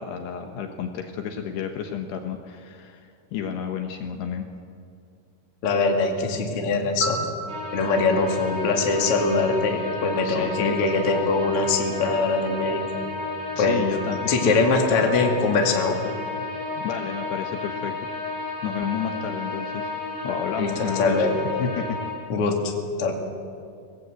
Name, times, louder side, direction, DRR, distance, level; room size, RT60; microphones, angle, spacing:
voice 1, 0.0-4.5 10.2-10.8 13.6-15.0 16.7-17.9 18.6-19.9 20.2-21.3 21.6-22.0, left 7 dB, 70° left, 5 dB, 3.0 m, -31 dB
voice 2, 5.6-7.2 7.7-12.8 13.6-13.8 14.3-16.0 20.6-20.7 20.9-21.4 22.3-22.7 23.0-23.1, left 3 dB, 40° left, 2 dB, 2.5 m, -22 dB
Piano, 7.0-9.9 18.1-18.3, right 4 dB, 85° right, 9.6 m, -36 dB
sound 1, 7.5-22.1, left 3 dB, 30° right, 8.1 m, -32 dB
24.5 x 18.0 x 8.0 m, 2.4 s
omnidirectional pair, 5.3 m